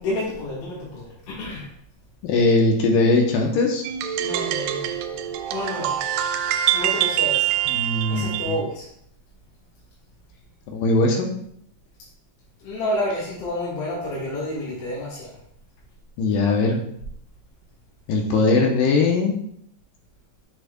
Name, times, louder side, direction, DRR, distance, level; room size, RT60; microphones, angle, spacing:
voice 1, 0.0-1.7 4.2-4.9 5.5-6.0 6.7-7.5 8.1-8.9 12.6-15.4, left 1 dB, 60° left, -8 dB, 2.9 m, -29 dB
voice 2, 2.2-3.8 7.7-8.5 10.7-11.3 16.2-16.8 18.1-19.4, left 3 dB, 75° left, 1 dB, 2.1 m, -20 dB
sound 1, 3.8-8.6, right 11 dB, 85° right, 2.0 m, -24 dB
8.3 x 6.3 x 2.3 m, 0.69 s
omnidirectional pair, 4.5 m